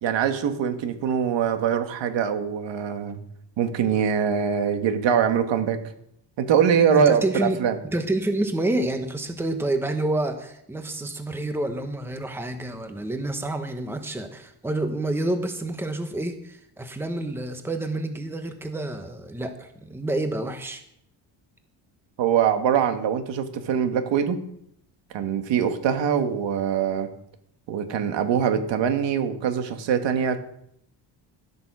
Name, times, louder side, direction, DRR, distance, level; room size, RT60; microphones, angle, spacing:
voice 1, 0.0-3.2 3.6-5.8 6.4-7.8 22.2-24.4 25.1-27.1 27.7-30.4, right 7 dB, 75° right, 7 dB, 1.7 m, -23 dB
voice 2, 6.9-7.6 7.8-20.8, right 1 dB, 5° right, 7 dB, 1.1 m, -28 dB
13.0 x 8.3 x 6.0 m, 0.73 s
cardioid pair, 135°, 44 cm